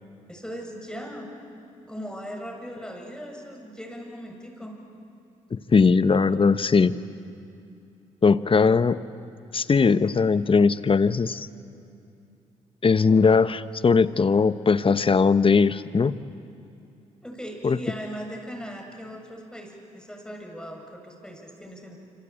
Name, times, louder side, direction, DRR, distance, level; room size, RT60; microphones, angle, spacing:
voice 1, 0.3-1.3 1.9-4.7 17.2-22.0, equal, 5° left, 2 dB, 7.4 m, -38 dB
voice 2, 5.5-6.9 8.2-9.0 9.5-11.5 12.8-16.2 17.6-17.8, left 5 dB, 35° left, 14 dB, 1.0 m, -20 dB
26.5 x 26.0 x 8.7 m, 2.6 s
supercardioid pair, 50°, 15 cm